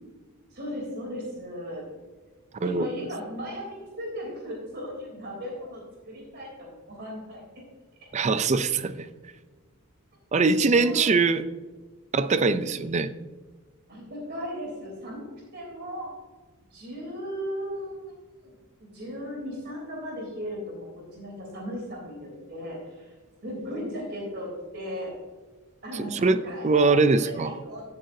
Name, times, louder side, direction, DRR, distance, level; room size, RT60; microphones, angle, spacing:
voice 1, 0.5-1.8 2.6-7.4 10.7-11.1 12.5-12.9 13.9-16.1 16.7-18.1 18.4-18.5 18.8-23.1 23.4-25.1 25.8-26.1 26.4-27.8, equal, 45° right, -2 dB, 3.3 m, -36 dB
voice 2, 8.1-9.1 10.3-11.4 12.1-13.1 26.0-27.5, right 4 dB, 30° right, 13 dB, 0.4 m, -22 dB
16.0 x 7.7 x 2.7 m, 1.3 s
head